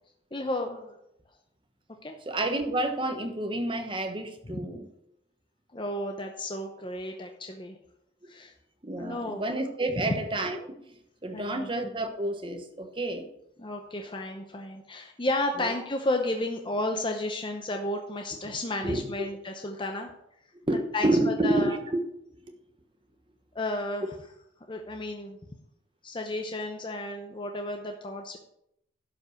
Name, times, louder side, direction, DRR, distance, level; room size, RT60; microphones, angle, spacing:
voice 1, 0.3-1.0 2.0-2.2 4.5-4.6 5.7-7.8 8.3-8.5 9.0-9.4 11.3-11.7 13.6-20.1 20.9-21.8 23.5-24.1 24.7-25.4 26.0-28.4, left 1 dB, 25° left, 3 dB, 0.7 m, -32 dB
voice 2, 2.2-4.8 8.2-8.3 8.8-10.9 11.2-13.3 15.6-15.7 18.8-19.3 20.6-22.0, right 1 dB, 25° right, 5 dB, 1.1 m, -29 dB
11.5 x 5.3 x 6.5 m, 0.78 s
head